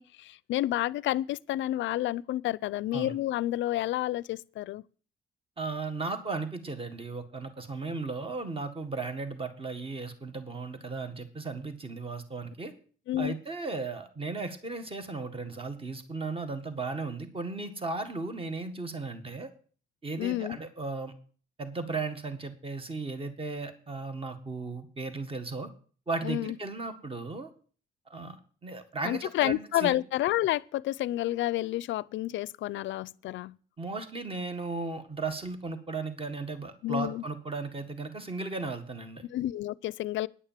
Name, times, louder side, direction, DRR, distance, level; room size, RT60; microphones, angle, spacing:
voice 1, 0.0-4.8 13.1-13.3 20.2-20.6 26.2-26.6 29.0-33.6 36.8-37.2 39.3-40.3, left 14 dB, 75° left, 0.4 m, -30 dB
voice 2, 5.6-12.7 13.2-19.5 20.0-21.1 21.6-25.7 26.1-27.5 28.1-28.4 28.6-30.0 33.8-39.3, right 3 dB, 30° right, 1.7 m, -36 dB
10.0 x 6.6 x 7.4 m
cardioid pair, 90°, 20 cm